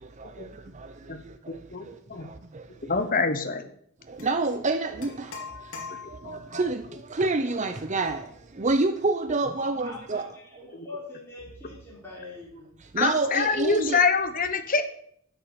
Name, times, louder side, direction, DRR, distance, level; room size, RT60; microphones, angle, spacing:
voice 1, 2.9-3.7 6.2-6.4 13.0-14.8, left 4 dB, 40° left, 1.1 m, -25 dB
voice 2, 4.1-5.3 6.2-6.8 7.1-8.2 8.6-10.3 12.9-14.0, right 3 dB, 35° right, 0.6 m, -27 dB
sound 1, 4.2-4.4 5.0-6.5, left 5 dB, 60° left, 2.3 m, -41 dB
voice 3, 9.6-12.7, left 3 dB, 10° left, 4.0 m, -43 dB
11.0 x 7.0 x 8.3 m
head